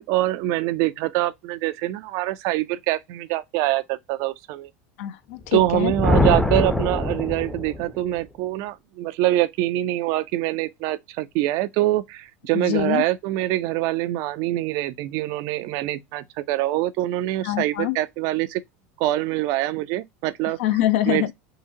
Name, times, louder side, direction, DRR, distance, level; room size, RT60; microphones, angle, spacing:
voice 1, 0.0-4.7 5.5-18.6 19.0-20.6 21.1-21.3, right 15 dB, 60° right, 0.4 m, -24 dB
voice 2, 5.0-5.9 12.5-13.0 17.4-18.0 20.6-21.3, left 12 dB, 80° left, 0.5 m, -24 dB
Thunder, 5.5-8.0, left 2 dB, 5° left, 0.5 m, -23 dB
3.7 x 2.1 x 2.6 m
supercardioid pair, 115°, 7 cm